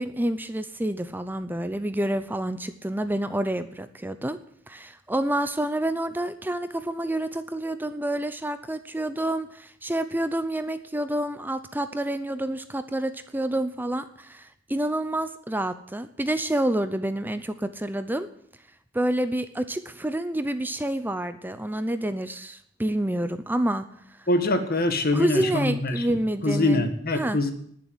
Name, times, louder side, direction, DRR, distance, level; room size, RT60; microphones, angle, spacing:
voice 1, 0.0-4.4 4.7-18.3 18.9-23.9 24.2-24.3 25.1-27.4, right 1 dB, 10° right, 10 dB, 0.7 m, -28 dB
voice 2, 24.3-26.1 26.4-27.5, left 2 dB, 50° left, 8 dB, 1.9 m, -24 dB
19.5 x 7.4 x 9.6 m, 0.66 s
head